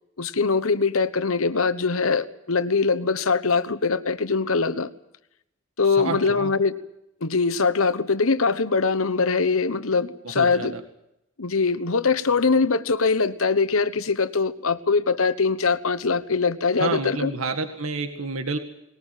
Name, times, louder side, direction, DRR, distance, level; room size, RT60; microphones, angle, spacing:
voice 1, 0.2-4.9 5.8-6.8 7.2-10.7 11.4-17.3, left 4 dB, 75° left, 14 dB, 1.1 m, -22 dB
voice 2, 5.8-6.5 10.2-10.8 16.8-18.6, right 3 dB, 75° right, 7 dB, 1.9 m, -29 dB
20.5 x 19.0 x 9.2 m, 0.82 s
head